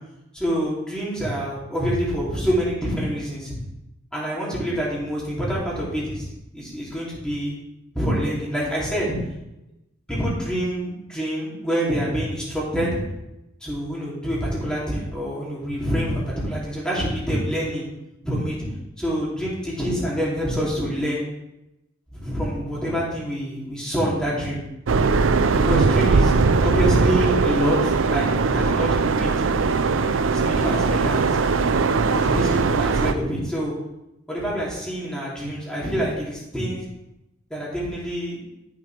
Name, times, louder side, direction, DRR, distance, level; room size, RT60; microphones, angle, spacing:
voice 1, 0.3-3.5 4.1-6.3 6.5-7.5 7.9-9.2 10.1-13.0 13.6-17.9 18.2-18.6 19.0-21.2 22.1-24.6 25.6-29.3 30.3-31.4 32.1-33.7 34.3-36.8 37.5-38.4, equal, 5° left, -7 dB, 3.0 m, -26 dB
sound 1, 24.9-33.1, right 4 dB, 75° right, 0.5 m, -20 dB
13.0 x 6.2 x 3.4 m, 0.90 s
head